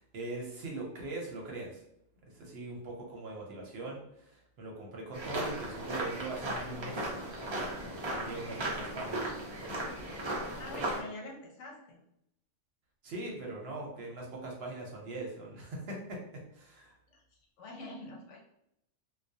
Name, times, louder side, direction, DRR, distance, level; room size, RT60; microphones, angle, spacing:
voice 1, 0.0-1.8 2.3-7.3 7.5-7.7 8.1-9.3 9.9-10.0 13.0-16.2 16.5-16.9, right 2 dB, 65° right, -1 dB, 0.8 m, -41 dB
sound 1, 5.1-11.0, right 1 dB, 40° right, 0.4 m, -36 dB
voice 2, 10.6-12.0 17.1-17.2 17.6-18.4, left 2 dB, 80° left, 0 dB, 1.0 m, -45 dB
2.3 x 2.1 x 2.6 m, 0.78 s
omnidirectional pair, 1.3 m